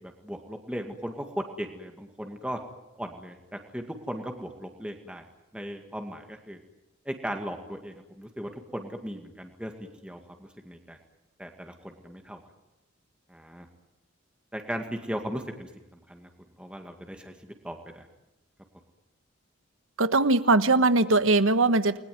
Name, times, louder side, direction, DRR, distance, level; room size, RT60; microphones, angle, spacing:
voice 1, 0.0-2.6 3.0-5.2 5.5-6.6 7.1-9.7 10.0-11.0 11.4-12.4 13.3-13.7 14.5-15.7 16.1-16.3 16.6-17.3 17.6-18.1, equal, 5° right, 3 dB, 2.1 m, -37 dB
voice 2, 20.0-22.0, right 3 dB, 85° right, 12 dB, 1.3 m, -21 dB
29.5 x 21.0 x 9.5 m, 0.96 s
head